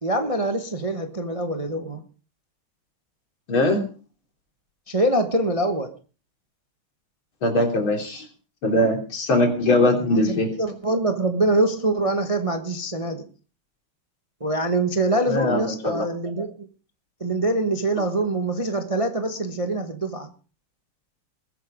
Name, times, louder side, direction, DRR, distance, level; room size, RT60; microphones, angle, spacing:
voice 1, 0.0-2.0 4.9-5.9 10.0-13.3 14.4-16.7 17.2-20.3, right 2 dB, 20° right, 6 dB, 1.0 m, -24 dB
voice 2, 3.5-3.8 7.4-8.3 8.6-10.5 15.3-16.1, left 1 dB, 65° left, 3 dB, 4.1 m, -21 dB
21.0 x 9.1 x 5.1 m, 0.38 s
omnidirectional pair, 2.4 m